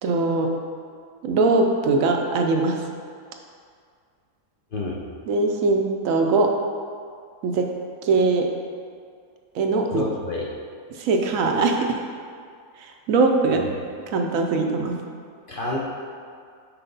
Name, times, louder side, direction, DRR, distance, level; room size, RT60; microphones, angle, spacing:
voice 1, 0.0-0.5 1.2-2.8 5.3-6.5 7.4-7.7 8.0-8.5 9.5-10.0 11.0-11.9 13.1-13.6 14.1-14.9, right 3 dB, 70° right, 3 dB, 1.0 m, -21 dB
voice 2, 9.9-10.5 13.6-13.7 15.5-15.8, left 2 dB, 50° left, -4 dB, 0.7 m, -28 dB
5.8 x 4.8 x 3.9 m, 2.2 s
omnidirectional pair, 1.5 m